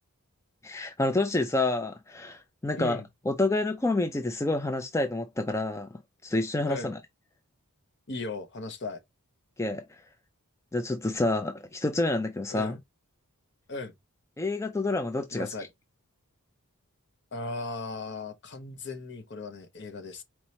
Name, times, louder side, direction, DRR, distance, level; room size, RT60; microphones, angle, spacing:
voice 1, 0.6-5.9 6.2-7.0 9.6-10.0 10.7-12.8 14.4-15.5, left 2 dB, 15° left, 0.3 m, -28 dB
voice 2, 8.1-9.0 12.5-12.8 13.7-13.9 15.3-15.6 17.3-20.2, left 3 dB, 50° left, 0.9 m, -37 dB
4.5 x 2.9 x 3.1 m
head